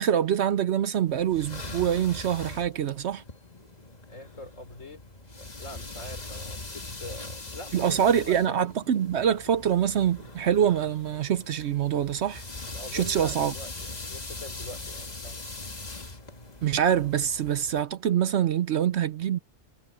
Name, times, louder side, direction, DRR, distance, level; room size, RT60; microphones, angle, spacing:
voice 1, 0.0-3.2 7.7-12.4 12.9-13.5 16.6-19.4, right 9 dB, 65° right, 0.8 m, -25 dB
sound 1, 1.1-17.8, left 2 dB, 30° left, 1.7 m, -41 dB
voice 2, 4.1-5.0 5.3-8.6 12.7-15.5, left 1 dB, 70° left, 4.3 m, -44 dB
omnidirectional pair, 1.4 m